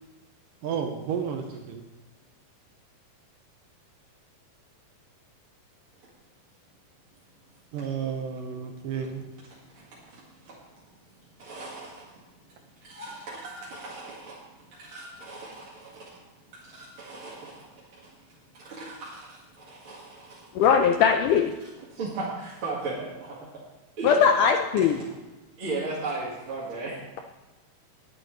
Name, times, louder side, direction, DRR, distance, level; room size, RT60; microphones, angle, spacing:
voice 1, 0.6-1.8 7.7-9.3, right 7 dB, 75° right, 4 dB, 2.3 m, -32 dB
voice 2, 9.7-10.6 11.4-12.2 12.8-16.2 16.5-17.7 18.0-18.1 18.5-20.7 21.9-23.6 24.0-24.1 24.4-24.5 24.8-24.9 25.6-27.0, right 3 dB, 45° right, -6 dB, 2.2 m, -37 dB
voice 3, 20.5-21.5 24.0-25.0, left 7 dB, 80° left, 5 dB, 1.8 m, -20 dB
20.5 x 8.9 x 3.2 m, 1.1 s
omnidirectional pair, 4.4 m